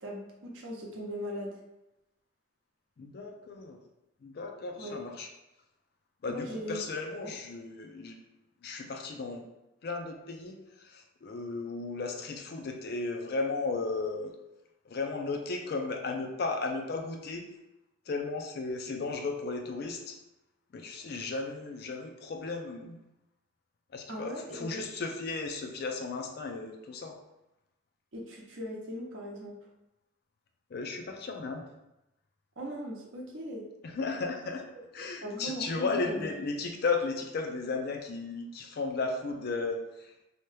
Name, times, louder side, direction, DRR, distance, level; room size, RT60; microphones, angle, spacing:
voice 1, 0.0-1.5 4.8-5.0 6.3-6.9 7.2-7.3 24.1-24.8 28.1-29.5 32.6-33.6 35.2-36.3, equal, 70° right, -1 dB, 0.7 m, -38 dB
voice 2, 3.0-3.8 4.2-5.3 6.2-8.2 8.6-9.4 9.8-14.3 14.9-17.5 18.1-20.2 20.7-22.9 23.9-27.2 30.7-31.6 33.8-34.6 34.9-40.1, left 3 dB, 50° left, 3 dB, 0.4 m, -35 dB
2.8 x 2.2 x 3.2 m, 0.93 s
head